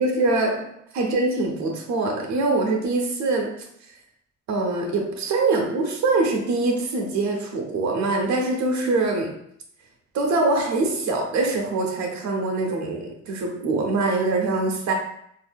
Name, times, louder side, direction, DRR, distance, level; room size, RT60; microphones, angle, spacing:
voice 1, 0.0-3.6 4.5-9.4 10.1-14.9, right 3 dB, 65° right, 1 dB, 0.8 m, -23 dB
4.0 x 2.6 x 2.2 m, 0.70 s
cardioid pair, 90°, 30 cm